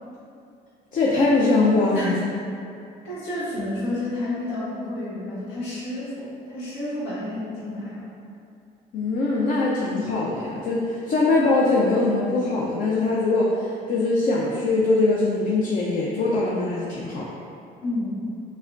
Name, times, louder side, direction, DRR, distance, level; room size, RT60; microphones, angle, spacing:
voice 1, 0.9-2.1 8.9-17.2, left 2 dB, 55° left, -5 dB, 0.5 m, -22 dB
voice 2, 3.0-8.1 17.8-18.1, left 1 dB, 85° left, -9 dB, 1.4 m, -30 dB
5.2 x 2.2 x 2.5 m, 2.5 s
cardioid pair, 110°, 17 cm